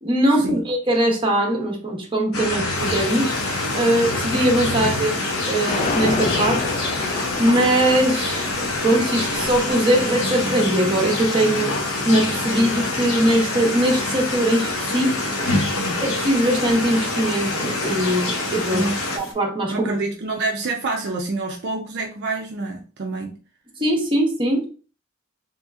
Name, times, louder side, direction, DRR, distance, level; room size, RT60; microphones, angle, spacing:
voice 1, 0.0-3.3 3.7-5.2 5.5-6.7 7.4-8.5 8.8-11.7 12.0-15.2 16.0-18.9 19.1-19.9 23.8-24.7, right 1 dB, 25° right, 1.0 m, -21 dB
sound 1, 2.3-19.2, left 2 dB, 90° left, 0.9 m, -26 dB
sound 2, 2.7-19.3, left 3 dB, 65° left, 1.1 m, -36 dB
sound 3, 5.7-11.8, left 3 dB, 35° left, 0.4 m, -31 dB
voice 2, 18.7-19.1 19.7-23.3, right 2 dB, 55° right, 0.5 m, -27 dB
3.2 x 2.8 x 3.5 m
head